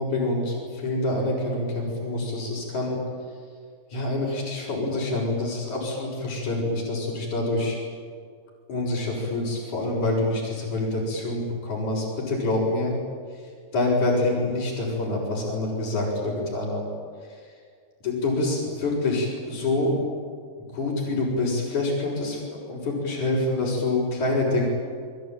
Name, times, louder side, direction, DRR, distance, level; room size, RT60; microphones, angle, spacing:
voice 1, 0.0-3.0 3.9-7.8 8.7-12.9 13.7-16.9 18.0-20.0 20.7-24.7, left 2 dB, 45° left, -6 dB, 7.2 m, -26 dB
27.5 x 22.5 x 9.1 m, 2.1 s
omnidirectional pair, 4.8 m